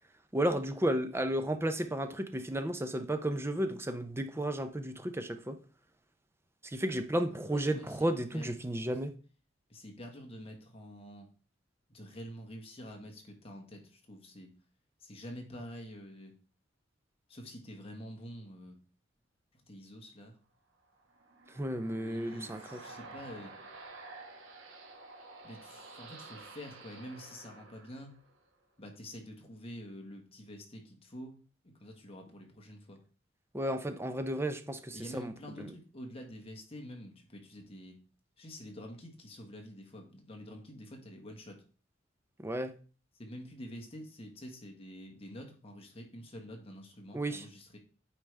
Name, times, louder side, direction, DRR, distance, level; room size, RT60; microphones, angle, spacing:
voice 1, 0.3-5.6 6.6-9.1 21.5-22.8 33.5-35.3 35.6-35.7 42.4-42.7 47.1-47.4, right 1 dB, 15° right, 0.6 m, -33 dB
voice 2, 7.3-8.6 9.7-11.3 11.9-14.5 15.0-16.3 17.3-18.8 19.5-20.4 21.9-23.5 25.4-28.2 28.8-31.4 31.6-33.0 34.9-38.0 38.4-41.6 43.1-47.8, equal, 30° left, 1.5 m, -47 dB
sound 1, 20.9-28.5, right 3 dB, 85° right, 1.3 m, -51 dB
8.8 x 4.9 x 3.3 m
head